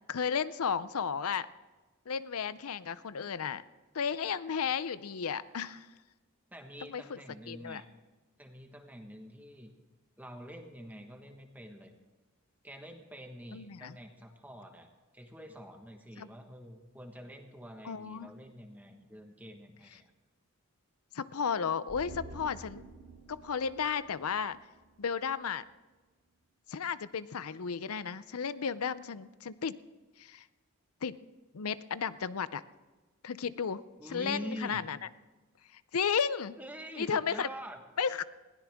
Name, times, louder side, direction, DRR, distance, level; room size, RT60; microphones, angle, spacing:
voice 1, 0.1-1.5 2.1-3.6 3.9-5.9 6.8-7.2 7.5-7.8 13.5-14.0 16.2-16.3 17.8-18.3 21.1-22.8 23.3-24.6 25.0-25.6 26.7-29.8 30.2-30.5 31.0-31.2 31.5-32.6 33.2-33.8 34.1-35.0 35.7-36.6 37.0-37.5 38.0-38.2, left 6 dB, 90° left, 16 dB, 0.6 m, -33 dB
voice 2, 6.5-7.9 8.4-9.7 10.2-11.9 12.6-14.9 15.1-20.1 34.0-34.8 36.6-37.8, equal, 10° right, 4 dB, 1.3 m, -46 dB
sound 1, 21.9-25.3 25.6-25.7, right 2 dB, 85° right, 6.0 m, -50 dB
21.0 x 16.0 x 3.6 m, 1.3 s
head